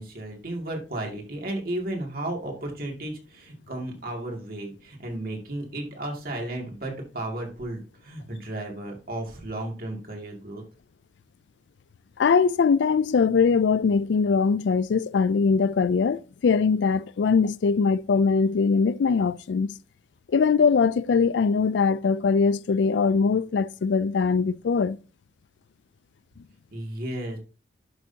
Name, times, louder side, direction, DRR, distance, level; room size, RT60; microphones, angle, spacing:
voice 1, 0.0-10.6 26.7-27.4, right 1 dB, 55° right, 2.3 m, -34 dB
voice 2, 12.2-19.7 20.3-25.0, left 5 dB, 75° left, 0.4 m, -22 dB
11.5 x 6.2 x 2.8 m
head